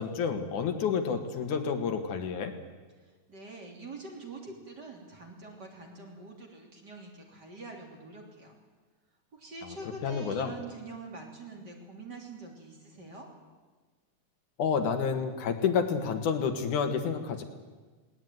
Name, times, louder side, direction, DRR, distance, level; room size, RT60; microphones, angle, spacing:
voice 1, 0.0-2.5 10.0-10.5 14.6-17.4, left 6 dB, 75° left, 6 dB, 2.9 m, -29 dB
voice 2, 3.0-8.5 9.3-13.3, right 3 dB, 30° right, 0 dB, 3.4 m, -45 dB
19.5 x 18.5 x 9.3 m, 1.4 s
omnidirectional pair, 3.7 m